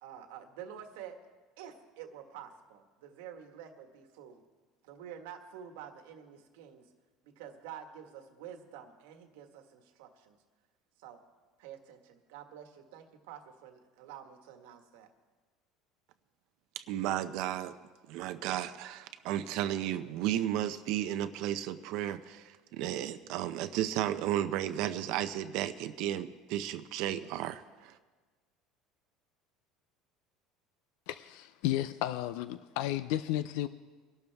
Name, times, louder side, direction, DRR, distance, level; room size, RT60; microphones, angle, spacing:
voice 1, 0.0-1.2 1.6-4.4 4.8-6.9 7.4-10.4 11.0-11.2 11.6-15.1, right 9 dB, 90° right, 5 dB, 1.6 m, -48 dB
voice 2, 16.8-17.7 18.1-28.0, right 12 dB, 65° right, 10 dB, 0.6 m, -33 dB
voice 3, 31.1-33.7, left 14 dB, 75° left, 13 dB, 0.5 m, -33 dB
23.5 x 12.0 x 3.5 m, 1.4 s
cardioid pair, 145°, 0 cm